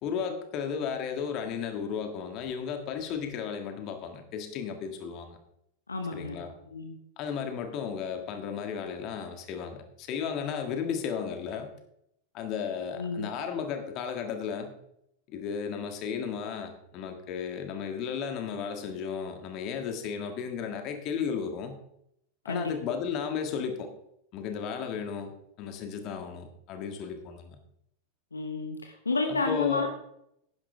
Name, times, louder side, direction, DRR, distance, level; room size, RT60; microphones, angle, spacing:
voice 1, 0.0-5.4 6.1-6.5 7.2-11.7 12.3-14.7 15.3-21.8 22.4-23.9 24.3-27.6 29.3-29.9, left 7 dB, 40° left, 6 dB, 1.7 m, -34 dB
voice 2, 5.9-6.4 6.7-7.0 13.0-13.3 22.5-22.7 28.3-29.9, left 3 dB, 75° left, 5 dB, 1.1 m, -31 dB
11.5 x 10.5 x 3.3 m, 0.77 s
figure-of-eight pair, 90°, 0 cm